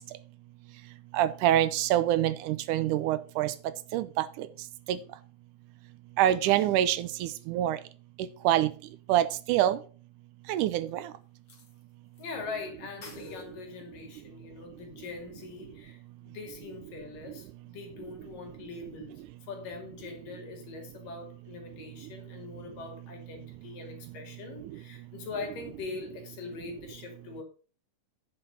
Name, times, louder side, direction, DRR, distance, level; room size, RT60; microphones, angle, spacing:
voice 1, 1.1-3.5 3.9-4.5 4.9-5.0 6.2-7.8 8.5-8.7 9.1-9.8 10.5-11.0, right 12 dB, 80° right, 2.1 m, -25 dB
sound 1, 10.6-10.7 11.5-12.3 12.6-12.7 13.0-13.4, left 5 dB, 40° left, 2.2 m, -48 dB
voice 2, 12.2-19.1 19.4-27.4, left 4 dB, 85° left, 4.0 m, -42 dB
9.7 x 6.0 x 5.3 m
omnidirectional pair, 3.7 m